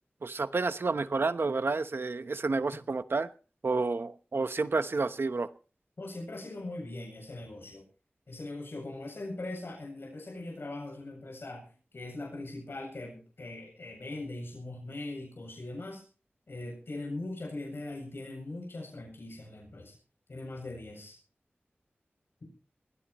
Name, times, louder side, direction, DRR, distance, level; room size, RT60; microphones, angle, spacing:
voice 1, 0.2-3.3 3.6-5.5, right 3 dB, 70° right, 11 dB, 1.0 m, -30 dB
voice 2, 6.0-7.8 8.3-16.0 16.5-19.9 20.3-21.2 22.4-22.5, left 2 dB, 70° left, 0 dB, 7.8 m, -40 dB
21.5 x 17.5 x 3.1 m, 0.38 s
wide cardioid pair, 65°, 4 cm